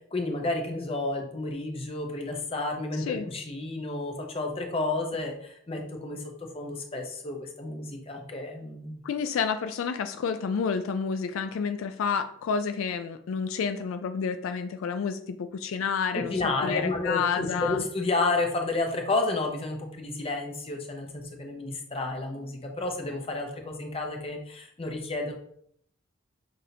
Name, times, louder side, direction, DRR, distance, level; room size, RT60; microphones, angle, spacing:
voice 1, 0.1-6.2 6.5-9.0 16.1-25.3, left 2 dB, 30° left, 2 dB, 0.7 m, -31 dB
voice 2, 9.0-17.8, left 6 dB, 80° left, 9 dB, 0.3 m, -29 dB
6.0 x 2.6 x 2.7 m, 0.65 s
head